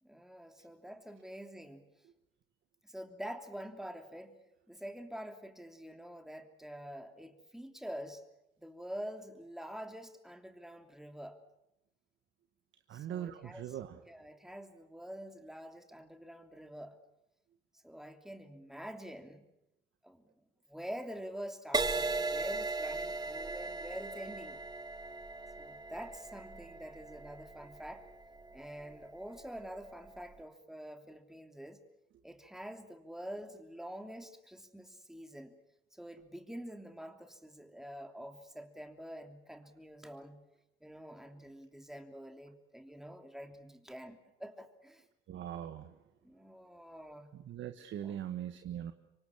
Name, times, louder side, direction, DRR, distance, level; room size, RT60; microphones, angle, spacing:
voice 1, 0.0-1.8 2.8-4.4 4.7-8.2 8.6-11.4 12.9-13.7 14.1-17.0 17.8-19.5 20.0-20.2 20.7-24.6 25.6-28.0 28.5-31.8 32.2-35.5 35.9-40.4 40.8-45.0 46.2-47.3 48.0-48.2, equal, ahead, 5 dB, 3.1 m, -46 dB
voice 2, 12.9-14.0 45.3-45.9 47.3-48.9, right 10 dB, 75° right, 8 dB, 1.5 m, -41 dB
Crash cymbal, 21.7-29.4 30.1-30.4, right 3 dB, 20° right, 1.8 m, -38 dB
26.5 x 24.0 x 7.3 m, 0.88 s
cardioid pair, 90°, 20 cm